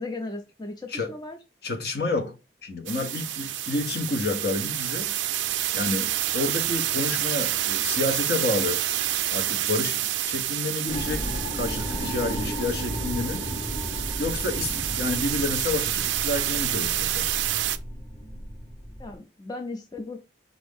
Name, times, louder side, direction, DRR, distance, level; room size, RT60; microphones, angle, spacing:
voice 1, 0.0-1.4 19.0-20.2, left 2 dB, 20° left, 0.4 m, -36 dB
voice 2, 1.6-5.1 5.7-8.8 9.3-11.3 11.5-13.5 14.2-17.3, left 2 dB, 60° left, 0.9 m, -29 dB
sound 1, 2.9-17.8, right 13 dB, 85° right, 0.4 m, -28 dB
sound 2, 10.9-19.1, equal, 40° left, 1.5 m, -34 dB
4.4 x 2.6 x 3.5 m
head